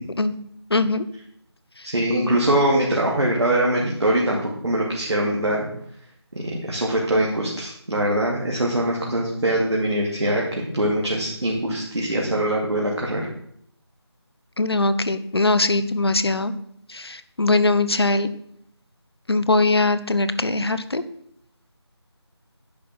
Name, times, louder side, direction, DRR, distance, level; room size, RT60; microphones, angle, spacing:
voice 1, 0.7-1.0 2.2-2.4 14.6-16.5 16.9-18.3 19.3-21.0, left 2 dB, 65° left, 13 dB, 0.9 m, -21 dB
voice 2, 1.8-5.6 6.3-13.3, right 1 dB, 75° right, -3 dB, 2.5 m, -23 dB
10.0 x 5.6 x 6.0 m, 0.68 s
figure-of-eight pair, 180°, 14 cm